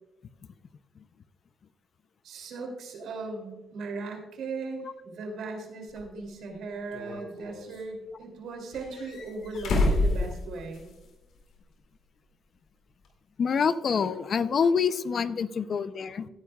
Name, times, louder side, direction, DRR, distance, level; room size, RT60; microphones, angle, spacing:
voice 1, 2.2-10.8, right 3 dB, 75° right, 2 dB, 2.8 m, -37 dB
sound 1, 5.9-6.0 6.9-7.8 8.7-11.1 11.4-11.5 13.1-13.2, left 2 dB, 75° left, 2.4 m, -29 dB
voice 2, 13.4-16.3, left 6 dB, 50° left, 14 dB, 0.5 m, -26 dB
17.0 x 9.7 x 2.3 m, 1.0 s
cardioid pair, 90°, 0 cm